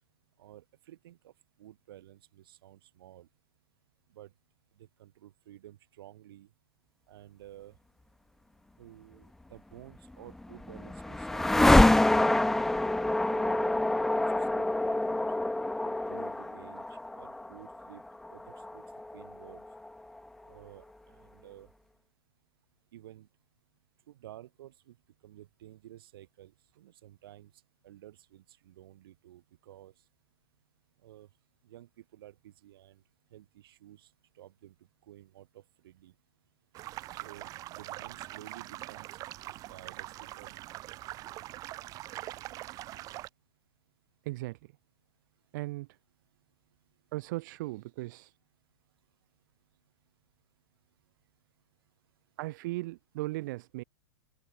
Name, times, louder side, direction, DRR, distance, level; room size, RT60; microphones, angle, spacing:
voice 1, 0.4-1.3 1.6-3.3 4.1-4.3 4.8-6.5 7.1-7.8 8.8-13.8 14.1-15.3 15.8-18.0 18.3-18.4 18.7-18.8 19.1-19.6 20.5-21.7 22.9-23.3 24.1-25.0 25.2-27.5 27.8-29.9 31.0-31.3 31.6-33.0 33.3-34.1 34.4-34.8 35.1-36.1 37.1-39.1 39.4-40.6, right 13 dB, 65° right, 6.9 m, -52 dB
sound 1, 10.1-20.2, left 2 dB, 5° left, 0.4 m, -27 dB
sound 2, 36.7-43.3, right 16 dB, 25° right, 1.0 m, -43 dB
voice 2, 44.2-44.6 45.5-45.9 47.1-48.3 52.4-53.8, right 20 dB, 50° right, 2.7 m, -37 dB
open air
supercardioid pair, 155°, 13 cm